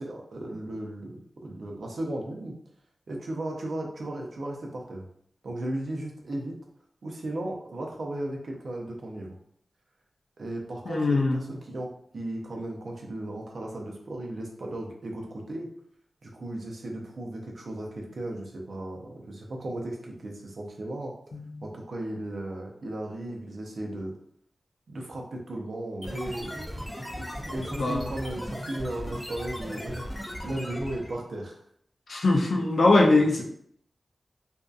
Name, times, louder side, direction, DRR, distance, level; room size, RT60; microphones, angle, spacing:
voice 1, 0.0-2.5 3.1-5.1 5.4-6.6 7.0-9.4 10.4-15.7 16.2-21.1 21.6-24.1 24.9-26.8 27.2-30.0 30.4-31.6, right 1 dB, 70° right, 0 dB, 0.5 m, -35 dB
voice 2, 10.9-11.4 21.3-21.6 27.8-28.1 32.1-33.4, left 2 dB, 70° left, 0 dB, 0.5 m, -22 dB
sound 1, 26.0-31.2, equal, 10° left, 0.5 m, -37 dB
2.6 x 2.4 x 2.3 m, 0.67 s
wide cardioid pair, 120°, 0 cm